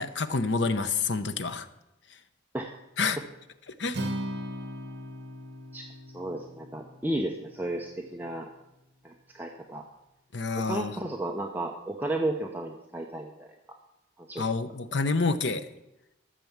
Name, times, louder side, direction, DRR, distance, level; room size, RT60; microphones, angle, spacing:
voice 1, 0.0-1.7 3.0-3.2 3.8-4.0 10.3-11.0 14.4-15.6, left 4 dB, 65° left, 11 dB, 0.8 m, -28 dB
Acoustic guitar, 3.9-8.2, equal, 55° right, 2.0 m, -38 dB
voice 2, 6.1-8.5 9.0-9.8 10.5-13.5 14.3-14.4, right 1 dB, 10° right, 1 dB, 0.8 m, -33 dB
14.0 x 6.8 x 7.3 m, 0.90 s
head